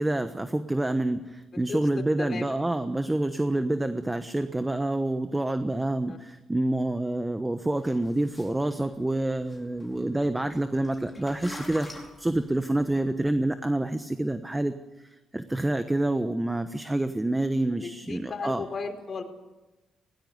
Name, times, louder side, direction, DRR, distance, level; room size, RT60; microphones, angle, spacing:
voice 1, 0.0-18.6, right 1 dB, 10° right, 9 dB, 1.1 m, -27 dB
sound 1, 7.7-13.1, left 1 dB, 10° left, 5.1 m, -46 dB
voice 2, 18.1-19.2, left 4 dB, 40° left, 5 dB, 4.1 m, -34 dB
18.5 x 18.5 x 9.4 m, 1.1 s
cardioid pair, 90°, 0 cm